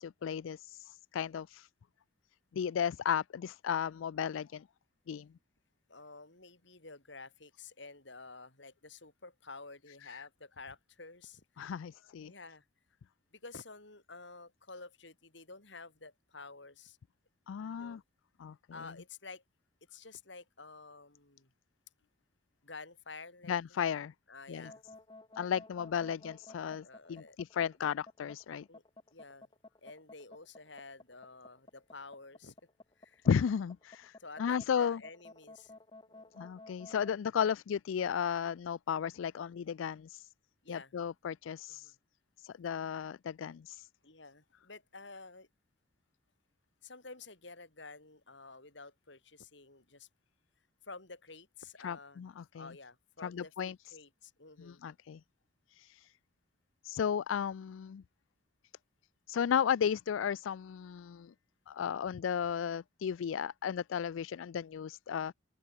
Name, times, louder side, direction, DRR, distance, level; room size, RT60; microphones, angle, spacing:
voice 1, 0.0-1.7 2.5-4.6 5.1-5.3 10.1-10.2 11.6-12.3 17.5-18.0 18.4-18.5 23.5-24.1 24.5-24.7 25.4-28.7 33.3-35.0 36.4-40.3 40.7-41.9 42.4-43.9 51.8-52.7 53.2-53.7 54.6-55.2 55.7-56.1 56.8-58.0 59.3-61.3 61.7-65.3, left 7 dB, 80° left, 0.4 m, -34 dB
voice 2, 5.9-11.7 12.2-12.6 13.3-17.0 17.6-18.0 18.7-19.4 19.9-21.5 22.6-23.8 24.3-24.8 26.8-27.4 28.7-28.8 29.1-29.5 29.8-32.5 33.0-33.3 34.2-35.8 36.1-36.4 40.6-41.1 41.7-42.0 44.0-45.5 46.8-50.1 50.8-52.2 52.5-54.8, left 3 dB, 60° left, 4.3 m, -51 dB
sound 1, 24.5-37.1, left 2 dB, 25° left, 1.9 m, -53 dB
open air
head